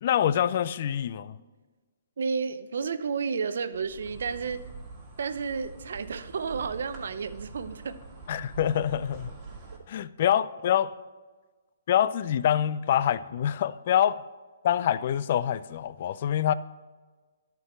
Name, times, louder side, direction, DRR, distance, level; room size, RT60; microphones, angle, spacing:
voice 1, 0.0-1.4 8.3-9.3 9.9-10.9 11.9-14.2 14.6-16.5, left 10 dB, 50° left, 0.4 m, -25 dB
voice 2, 2.2-4.6 5.2-8.0, right 5 dB, 70° right, 0.6 m, -31 dB
Insect, 3.7-9.8, right 4 dB, 25° right, 2.5 m, -45 dB
11.0 x 4.6 x 5.9 m
hypercardioid pair, 140°, 0 cm